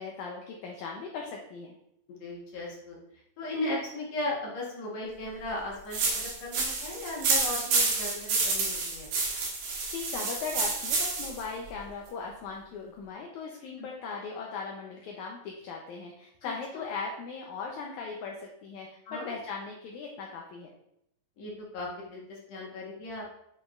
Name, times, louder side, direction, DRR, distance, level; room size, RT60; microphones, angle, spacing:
voice 1, 0.0-1.8 9.6-20.7, left 5 dB, 75° left, 0 dB, 1.8 m, -39 dB
voice 2, 2.1-3.0 3.4-9.1 16.4-16.8 19.1-19.3 21.4-23.3, left 1 dB, 60° left, -3 dB, 2.2 m, -37 dB
sound 1, 5.9-11.4, right 4 dB, 90° right, 3.4 m, -29 dB
7.6 x 5.6 x 2.5 m, 0.75 s
omnidirectional pair, 4.2 m